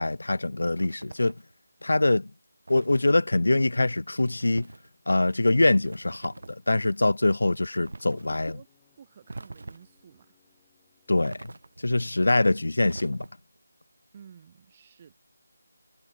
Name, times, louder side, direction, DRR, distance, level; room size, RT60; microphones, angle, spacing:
voice 1, 0.0-1.3 1.8-2.3 2.7-4.7 5.1-8.6 11.1-11.5 11.8-13.3, left 2 dB, 90° left, 0.5 m, -24 dB
sound 1, 0.7-1.5 2.7-3.1 4.3-4.9 5.8-6.6 7.8-8.4 9.3-10.0 11.2-11.9 12.8-13.6, right 2 dB, 65° right, 2.0 m, -44 dB
sound 2, 5.8-13.2, left 21 dB, 10° left, 4.6 m, -72 dB
voice 2, 8.1-8.7 9.0-10.4 14.1-15.2, right 8 dB, 20° right, 4.6 m, -52 dB
figure-of-eight pair, 175°, 0 cm